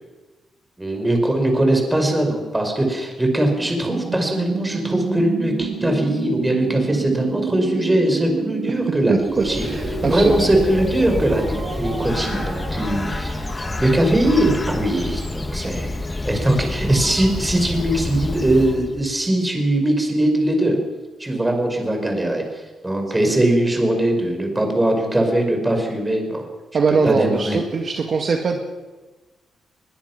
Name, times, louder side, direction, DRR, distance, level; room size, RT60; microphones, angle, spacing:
voice 1, 0.8-9.7 10.0-13.3 13.8-15.9 16.2-20.8 21.2-22.4 22.8-26.5 27.0-27.6, right 1 dB, 15° right, 4 dB, 5.2 m, -20 dB
sound 1, 3.6-15.4, right 6 dB, 65° right, 2.8 m, -30 dB
Bird, 9.1-19.1, left 2 dB, 20° left, 1.3 m, -28 dB
voice 2, 9.1-10.5 26.7-28.5, right 4 dB, 50° right, 2 dB, 2.1 m, -22 dB
22.0 x 22.0 x 6.1 m, 1.2 s
cardioid pair, 105°, 0 cm